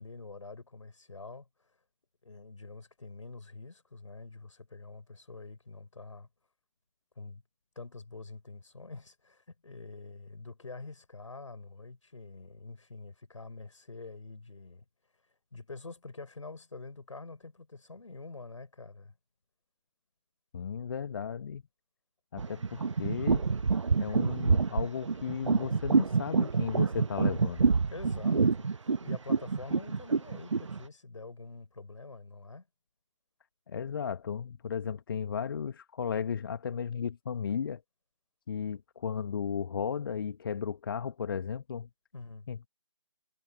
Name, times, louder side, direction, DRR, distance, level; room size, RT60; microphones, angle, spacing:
voice 1, 0.0-1.5 2.2-6.3 7.2-7.4 7.8-14.8 15.5-19.1 27.9-32.7 42.1-42.5, left 3 dB, 70° left, 5.6 m, -46 dB
voice 2, 20.5-21.6 22.3-23.5 24.0-27.7 33.7-37.8 38.5-41.9 42.5-42.7, left 7 dB, 45° left, 1.2 m, -35 dB
sound 1, 22.4-30.8, right 4 dB, 65° right, 1.1 m, -27 dB
figure-of-eight pair, 150°, 17 cm